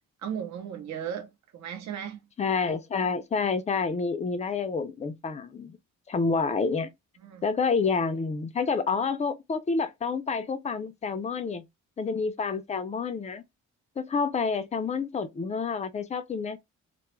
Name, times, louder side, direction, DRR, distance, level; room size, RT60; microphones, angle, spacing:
voice 1, 0.2-2.2 7.2-7.4, right 8 dB, 65° right, 0.7 m, -36 dB
voice 2, 2.4-5.8 6.1-6.9 7.4-11.7 12.0-13.4 14.0-16.6, left 5 dB, 25° left, 0.4 m, -28 dB
2.2 x 2.0 x 3.0 m
cardioid pair, 90°, 30 cm